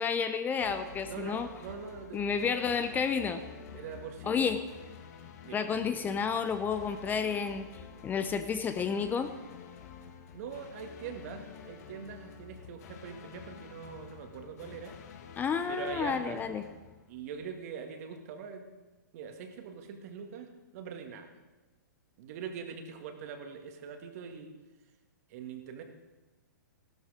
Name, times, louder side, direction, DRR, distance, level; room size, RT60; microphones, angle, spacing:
voice 1, 0.0-1.5 2.1-3.4 4.2-4.6 5.5-7.6 8.0-9.3 15.4-16.6, left 6 dB, 15° left, 9 dB, 0.7 m, -31 dB
sound 1, 0.6-17.6, left 7 dB, 55° left, 1.6 m, -49 dB
voice 2, 1.0-2.5 3.7-4.4 5.4-5.6 10.3-15.0 15.7-16.4 17.1-18.7 19.1-21.3 22.2-24.5 25.3-25.8, right 6 dB, 50° right, 5 dB, 2.1 m, -43 dB
15.0 x 12.5 x 5.0 m, 1.2 s
hypercardioid pair, 130°, 10 cm